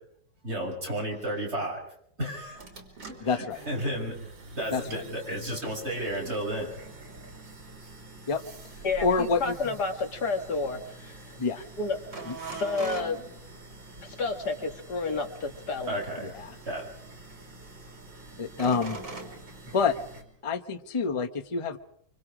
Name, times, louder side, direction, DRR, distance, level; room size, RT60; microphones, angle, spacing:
voice 1, 0.4-1.9 2.2-2.6 3.1-6.7 15.9-16.3 16.6-16.9, right 1 dB, 35° right, 0 dB, 6.2 m, -33 dB
sound 1, 2.5-20.2, right 3 dB, 90° right, 4.0 m, -44 dB
voice 2, 3.2-3.6 4.7-5.0 8.3-8.4 9.0-9.5 11.4-11.6 12.3-12.4 16.3-16.5 18.4-19.0 19.7-20.0 20.4-21.8, left 4 dB, 25° left, 8 dB, 0.8 m, -27 dB
voice 3, 8.8-11.4 11.8-12.2 12.5-13.3 14.0-16.0, left 3 dB, 60° left, 5 dB, 2.6 m, -31 dB
25.5 x 25.0 x 5.0 m, 0.66 s
omnidirectional pair, 1.9 m